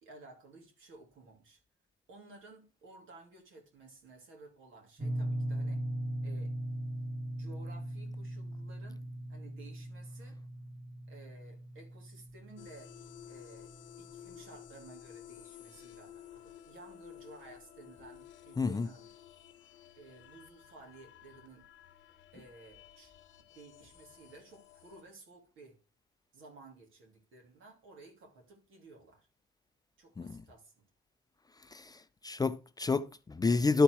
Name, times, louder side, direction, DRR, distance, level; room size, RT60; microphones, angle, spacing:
voice 1, 0.0-1.6 2.1-5.9 6.2-6.5 7.4-10.4 11.1-12.9 13.3-19.1 20.0-21.7 22.3-23.1 23.5-25.7 26.3-29.3 30.0-30.7, right 3 dB, 80° right, 2.8 m, -55 dB
sound 1, 5.0-13.7, right 1 dB, 20° right, 2.0 m, -39 dB
sound 2, 12.6-25.0, left 11 dB, 75° left, 0.9 m, -54 dB
voice 2, 18.6-18.9 30.2-30.4 31.7-33.8, left 4 dB, 20° left, 0.4 m, -29 dB
12.0 x 4.2 x 4.7 m
cardioid pair, 90°, 20 cm